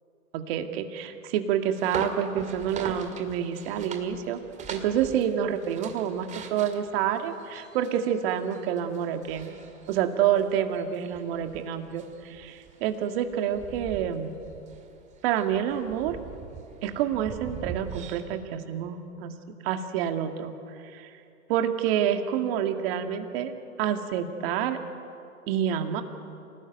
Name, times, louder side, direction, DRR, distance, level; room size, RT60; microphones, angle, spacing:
voice 1, 0.3-4.4 4.7-9.6 9.9-14.3 15.2-16.2 16.8-19.3 19.6-20.5 20.8-21.1 21.5-23.5 23.8-24.8 25.5-26.0, right 9 dB, 40° right, 6 dB, 2.2 m, -28 dB
sound 1, 1.7-18.2, right 6 dB, 15° right, 2.1 m, -42 dB
28.0 x 19.0 x 9.3 m, 2.6 s
hypercardioid pair, 130°, 45 cm